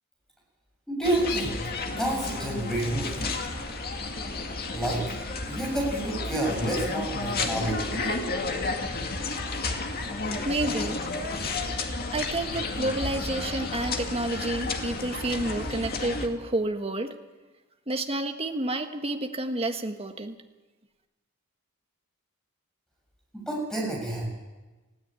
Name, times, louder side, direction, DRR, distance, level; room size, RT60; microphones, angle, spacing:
voice 1, 0.9-1.6 1.9-3.3 4.7-5.0 5.5-7.9 23.3-24.3, right 1 dB, 5° left, -2 dB, 7.3 m, -29 dB
sound 1, 1.0-16.3, left 3 dB, 45° left, 2.1 m, -32 dB
voice 2, 10.4-11.0 12.1-17.1 17.9-20.3, right 2 dB, 25° right, 5 dB, 1.5 m, -30 dB
19.0 x 16.5 x 8.9 m, 1.2 s
head